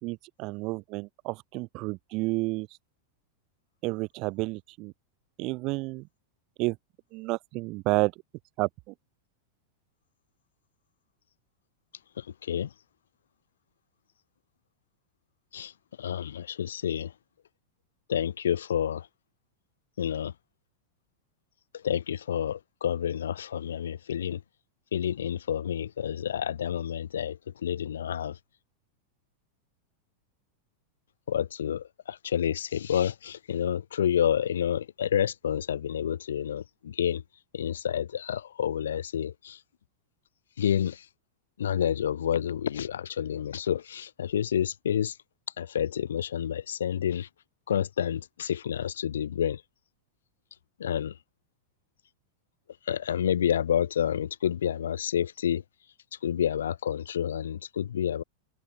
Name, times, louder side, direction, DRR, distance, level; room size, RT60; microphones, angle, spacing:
voice 1, 0.0-2.7 3.8-4.9 5.4-6.1 6.6-6.8 7.1-8.1 8.6-8.9, right 23 dB, 40° right, 5.6 m, -30 dB
voice 2, 12.2-12.7 15.5-15.7 16.0-17.1 18.1-19.1 20.0-20.3 21.7-24.4 24.9-28.4 31.3-37.2 37.5-39.6 40.6-41.1 41.6-45.2 45.6-47.3 47.7-49.6 50.8-51.2 52.9-55.6 56.2-58.2, left 9 dB, 65° left, 5.3 m, -29 dB
figure-of-eight pair, 90°, 0 cm